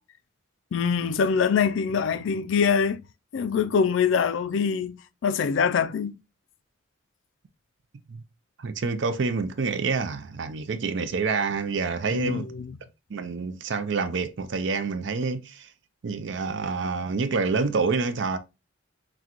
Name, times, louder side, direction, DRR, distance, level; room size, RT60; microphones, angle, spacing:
voice 1, 0.7-3.0 3.3-6.2 12.1-12.8, left 6 dB, 70° left, 0.4 m, -24 dB
voice 2, 8.6-12.5 13.1-15.7 16.0-18.4, right 4 dB, 65° right, 0.5 m, -27 dB
6.0 x 2.2 x 2.9 m
head